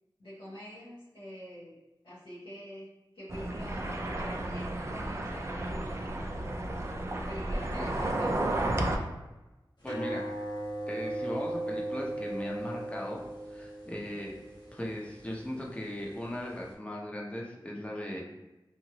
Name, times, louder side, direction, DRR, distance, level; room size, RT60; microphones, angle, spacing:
voice 1, 0.2-1.8 2.0-2.8 3.1-5.9 7.1-8.8, equal, 85° left, -12 dB, 0.9 m, -46 dB
sound 1, 3.3-9.0, right 1 dB, 35° right, 0.4 m, -32 dB
sound 2, 9.8-16.7, right 1 dB, 60° left, 0.8 m, -38 dB
voice 2, 9.8-10.3 10.9-13.2 13.5-14.4 14.7-18.2, left 1 dB, 15° left, -3 dB, 0.7 m, -38 dB
2.9 x 2.4 x 2.8 m, 1.0 s
wide cardioid pair, 60°, 9 cm